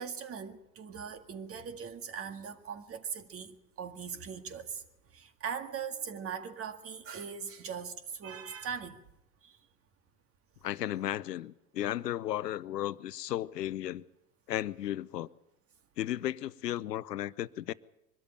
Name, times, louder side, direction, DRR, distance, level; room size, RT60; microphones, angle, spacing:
voice 1, 0.0-4.8 5.1-9.0 9.4-9.6, right 7 dB, 30° right, 1.9 m, -40 dB
voice 2, 10.6-14.0 14.5-15.3 16.0-17.7, left 13 dB, 75° left, 0.8 m, -34 dB
23.0 x 13.0 x 9.0 m
hypercardioid pair, 90°, 48 cm